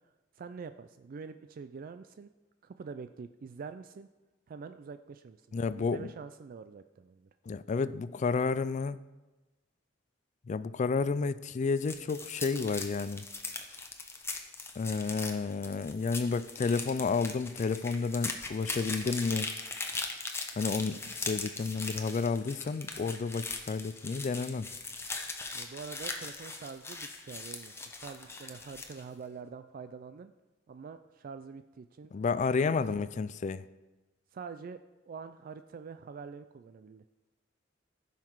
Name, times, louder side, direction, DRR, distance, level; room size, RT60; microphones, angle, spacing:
voice 1, 0.4-2.3 2.6-4.1 4.5-7.3 20.8-21.0 25.5-30.3 30.7-32.1 32.6-32.7 33.0-33.2 34.3-37.0, right 5 dB, 45° right, 10 dB, 0.3 m, -45 dB
voice 2, 5.5-6.1 7.5-9.0 10.5-13.3 14.8-19.5 20.6-24.7 32.1-33.7, left 4 dB, 40° left, 16 dB, 0.3 m, -31 dB
sound 1, 11.7-29.0, left 3 dB, 15° left, 0.9 m, -40 dB
15.0 x 5.8 x 4.6 m, 1.1 s
head